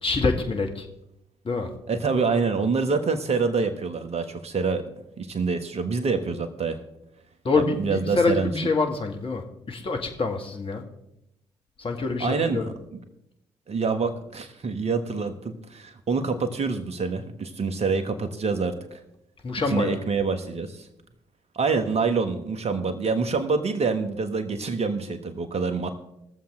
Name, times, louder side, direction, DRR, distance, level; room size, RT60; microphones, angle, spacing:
voice 1, 0.0-0.9 1.4-1.7 7.4-10.8 11.8-12.6 19.4-20.0, left 3 dB, 35° left, 3 dB, 1.9 m, -26 dB
voice 2, 1.9-4.8 5.2-6.8 7.5-8.7 12.2-12.7 13.7-19.0 19.7-20.9 21.5-25.9, right 4 dB, 45° right, 8 dB, 1.5 m, -26 dB
21.0 x 7.2 x 3.8 m, 0.84 s
figure-of-eight pair, 40°, 15 cm